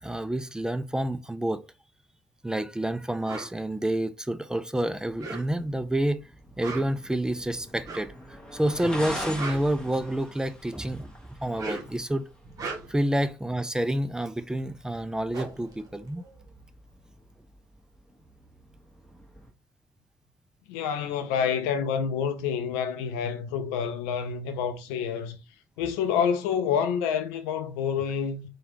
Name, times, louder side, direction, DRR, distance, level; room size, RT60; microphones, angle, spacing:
voice 1, 0.0-1.6 2.4-6.2 6.6-8.1 8.5-11.1 11.4-12.3 12.9-16.2, right 1 dB, 10° right, 0.3 m, -28 dB
sound 1, 3.2-3.5 5.0-5.8 6.5-7.1 7.8-8.2 9.1-10.4 11.4-12.0 12.4-13.1 14.7-14.8 15.0-16.7, right 3 dB, 45° right, 1.0 m, -39 dB
sound 2, 5.0-19.5, equal, 10° left, 1.1 m, -44 dB
voice 2, 20.7-25.4 25.8-28.5, left 7 dB, 75° left, 0.4 m, -28 dB
3.1 x 2.3 x 2.9 m
hypercardioid pair, 50°, 8 cm